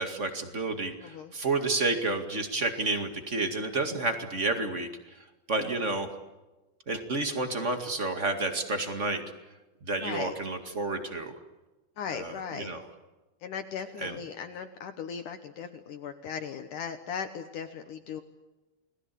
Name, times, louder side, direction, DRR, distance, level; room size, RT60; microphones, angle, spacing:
voice 1, 0.0-4.9 5.5-6.1 6.9-9.2 9.8-11.3 12.1-12.8 14.0-14.1, right 3 dB, 35° right, 6 dB, 1.2 m, -30 dB
voice 2, 1.0-1.3 10.0-10.4 12.0-12.7 13.4-18.2, left 7 dB, 65° left, 8 dB, 2.2 m, -38 dB
30.0 x 20.5 x 8.4 m, 1.1 s
omnidirectional pair, 4.8 m